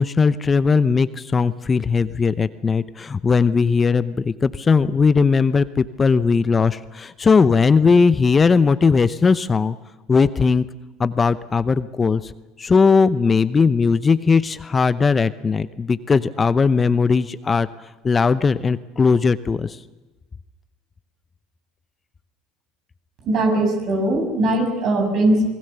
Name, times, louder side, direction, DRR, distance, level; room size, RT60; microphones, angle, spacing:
voice 1, 0.0-9.8 10.1-10.6 11.0-12.3 12.6-17.7 18.0-19.8, left 5 dB, 25° left, 14 dB, 0.8 m, -18 dB
voice 2, 23.2-25.5, right 1 dB, 55° right, 5 dB, 6.9 m, -20 dB
27.5 x 20.0 x 6.9 m, 1.1 s
hypercardioid pair, 85°, 0 cm